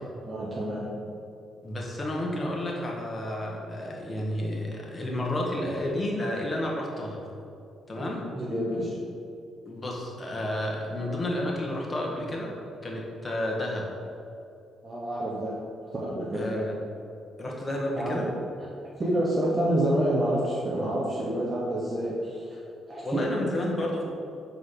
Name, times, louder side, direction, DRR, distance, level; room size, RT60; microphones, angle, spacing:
voice 1, 0.2-0.9 8.0-9.0 14.8-15.6 15.9-16.5 18.0-18.2 19.0-22.6 22.9-23.2, right 1 dB, 30° right, -5 dB, 1.0 m, -28 dB
voice 2, 1.6-7.2 7.9-8.2 9.6-12.5 12.8-13.9 16.3-16.7 17.4-18.3 23.0-24.0, left 1 dB, 25° left, -2 dB, 1.3 m, -31 dB
4.9 x 3.8 x 5.7 m, 2.5 s
cardioid pair, 90°, 0 cm